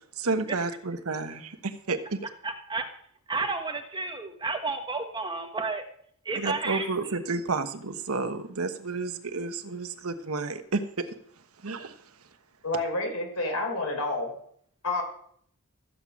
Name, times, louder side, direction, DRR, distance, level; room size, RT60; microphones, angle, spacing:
voice 1, 0.2-2.2 6.4-11.1 11.6-11.9, right 3 dB, 70° right, 7 dB, 1.1 m, -31 dB
voice 2, 2.4-2.8 3.3-5.8 6.2-6.9, right 3 dB, 20° right, 5 dB, 1.3 m, -31 dB
voice 3, 12.6-14.3 14.8-15.0, left 2 dB, 80° left, 2 dB, 4.4 m, -29 dB
13.5 x 8.6 x 6.2 m, 0.65 s
head